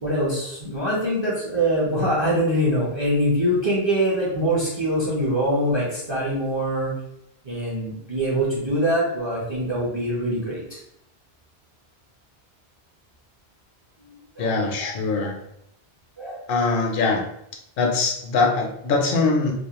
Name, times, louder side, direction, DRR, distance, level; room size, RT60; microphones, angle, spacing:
voice 1, 0.0-6.9 7.4-10.8 14.4-14.9 15.2-15.3 16.2-16.4, equal, 30° right, -6 dB, 0.6 m, -24 dB
voice 2, 14.4-15.4 16.5-17.2 17.8-19.5, left 3 dB, 65° left, 1 dB, 0.7 m, -22 dB
2.4 x 2.0 x 2.8 m, 0.76 s
omnidirectional pair, 1.1 m